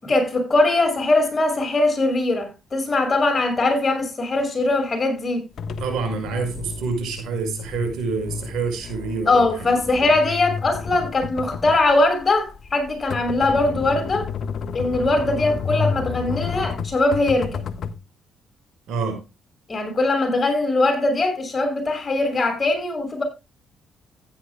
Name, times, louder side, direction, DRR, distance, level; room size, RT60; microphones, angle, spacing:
voice 1, 0.0-5.4 9.3-14.3 14.7-17.6 19.7-23.2, left 2 dB, 35° left, 6.0 m, -21 dB
sound 1, 5.6-18.0, left 5 dB, 60° left, 1.2 m, -31 dB
voice 2, 5.8-10.1 18.9-19.2, right 4 dB, 80° right, 5.5 m, -27 dB
15.5 x 10.0 x 2.2 m
cardioid pair, 90°, 0 cm